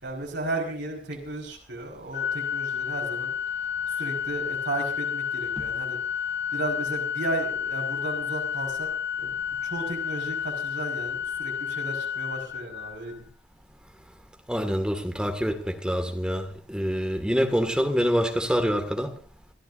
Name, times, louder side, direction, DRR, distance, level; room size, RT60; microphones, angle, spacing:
voice 1, 0.0-3.3 4.0-6.0 6.5-8.9 9.2-9.3 9.6-13.2, right 2 dB, 80° right, 5.0 m, -34 dB
Organ, 2.1-13.2, left 8 dB, 85° left, 1.9 m, -31 dB
voice 2, 14.5-19.1, equal, 5° right, 2.0 m, -26 dB
28.5 x 13.5 x 2.7 m
head